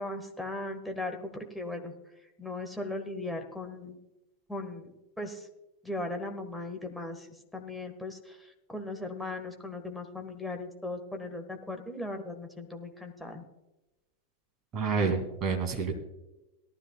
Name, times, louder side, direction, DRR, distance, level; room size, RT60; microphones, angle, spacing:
voice 1, 0.0-1.9 2.4-4.0 4.5-5.5 5.8-7.3 7.5-13.4, left 2 dB, ahead, 4 dB, 1.5 m, -38 dB
voice 2, 14.7-15.9, right 5 dB, 30° right, 3 dB, 2.4 m, -28 dB
18.0 x 12.5 x 2.3 m, 0.97 s
figure-of-eight pair, 90°, 0 cm